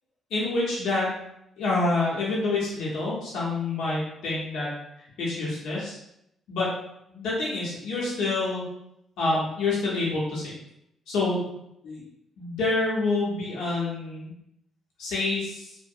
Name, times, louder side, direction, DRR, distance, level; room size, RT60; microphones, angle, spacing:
voice 1, 0.3-1.1 1.6-4.7 5.2-6.0 6.5-6.7 7.1-8.6 9.2-10.5 11.1-12.0 12.4-14.3 15.0-15.7, left 3 dB, 80° left, -6 dB, 0.7 m, -27 dB
2.7 x 2.0 x 2.5 m, 0.79 s
cardioid pair, 90°, 0 cm